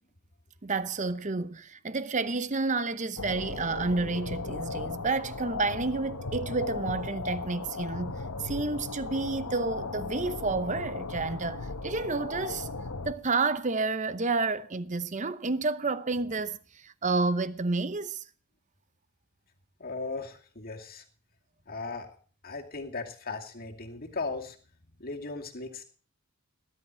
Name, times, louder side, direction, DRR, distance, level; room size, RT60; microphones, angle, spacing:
voice 1, 0.6-12.7 13.0-18.2, right 3 dB, 35° right, 0.8 m, -30 dB
sound 1, 3.2-13.1, left 3 dB, 90° left, 1.4 m, -36 dB
voice 2, 19.8-21.0 21.7-22.2 22.4-24.6 25.0-25.8, left 3 dB, 40° left, 2.5 m, -37 dB
19.0 x 11.0 x 4.4 m
head